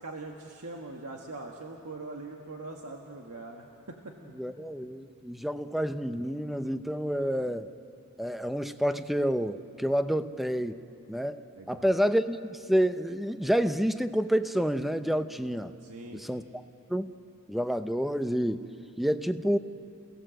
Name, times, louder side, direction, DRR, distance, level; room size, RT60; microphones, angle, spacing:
voice 1, 0.0-4.0 11.6-11.9 15.8-16.2, right 2 dB, 85° right, 1 dB, 1.6 m, -42 dB
voice 2, 4.4-7.7 8.2-10.8 11.1-11.4 11.7-15.7 16.1-16.4 16.9-17.1 17.5-18.7 19.0-19.6, equal, ahead, 10 dB, 0.6 m, -28 dB
29.0 x 17.0 x 7.7 m, 2.6 s
head